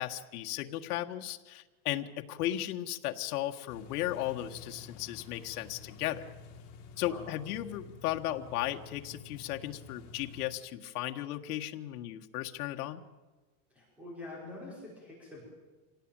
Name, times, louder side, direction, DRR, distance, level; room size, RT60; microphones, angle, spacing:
voice 1, 0.0-6.3 7.0-13.0, left 13 dB, 85° left, 5 dB, 1.6 m, -35 dB
sound 1, 3.7-10.5, left 5 dB, 55° left, 5.4 m, -50 dB
voice 2, 6.9-7.3 13.7-15.5, left 2 dB, 5° right, -4 dB, 5.2 m, -46 dB
26.0 x 18.0 x 9.0 m, 1.3 s
supercardioid pair, 180°, 44 cm